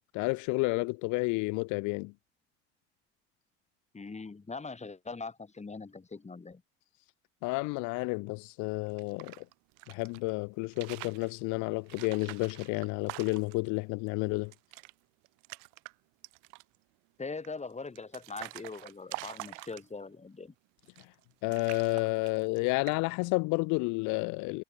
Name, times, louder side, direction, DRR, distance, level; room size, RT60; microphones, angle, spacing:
voice 1, 0.1-2.1 7.4-9.4 9.9-14.5 21.0-21.1 21.4-24.6, left 28 dB, 55° left, 0.6 m, -31 dB
voice 2, 3.9-6.6 17.2-20.5, left 4 dB, 20° left, 2.7 m, -41 dB
sound 1, 8.9-10.2 10.6-11.3 11.9-13.7 14.1-14.2 14.4-14.9 15.2-15.9 16.2-16.8 17.4-20.1 20.8-21.2 21.5-22.6 22.9-23.2, right 40 dB or more, 70° right, 3.0 m, -45 dB
hypercardioid pair, 65°, 35 cm